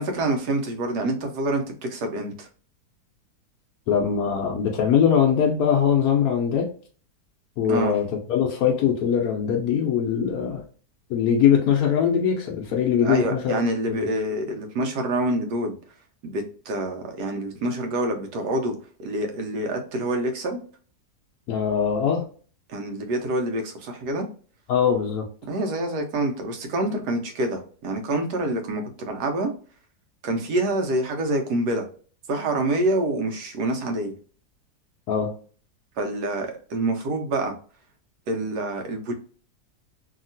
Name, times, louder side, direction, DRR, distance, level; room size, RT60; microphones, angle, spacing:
voice 1, 0.0-2.5 7.7-7.9 13.0-15.8 16.2-18.7 19.0-20.6 22.7-24.3 25.5-29.5 30.2-31.9 32.3-34.1 36.0-37.5 38.3-39.1, right 1 dB, 85° right, 1.3 m, -26 dB
voice 2, 3.9-6.7 7.6-10.6 11.1-13.6 13.9-14.1 21.5-22.2 24.7-25.3 35.1-35.3, left 8 dB, 75° left, 1.0 m, -22 dB
2.8 x 2.8 x 2.6 m
omnidirectional pair, 1.7 m